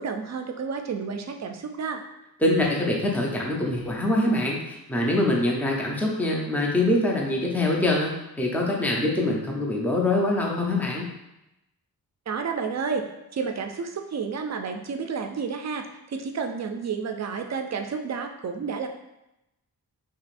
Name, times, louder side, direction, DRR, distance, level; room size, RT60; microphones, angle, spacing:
voice 1, 0.0-2.0 12.3-13.1 13.3-18.9, right 5 dB, 45° right, 5 dB, 0.4 m, -31 dB
voice 2, 2.4-11.1, left 1 dB, 5° left, -2 dB, 0.6 m, -24 dB
4.8 x 2.9 x 2.5 m, 0.91 s
wide cardioid pair, 125°, 37 cm